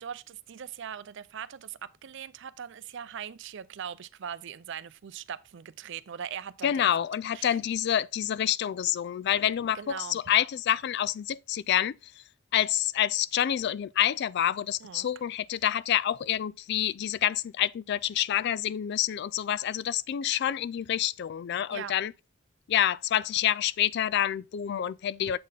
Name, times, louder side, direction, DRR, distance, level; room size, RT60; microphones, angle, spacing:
voice 1, 0.0-6.8 7.3-7.6 9.7-10.2 14.8-15.1 21.7-21.9, right 8 dB, 60° right, 0.4 m, -40 dB
voice 2, 6.6-12.0 12.5-22.1 22.7-25.4, left 10 dB, 55° left, 0.3 m, -27 dB
7.6 x 4.1 x 3.9 m
head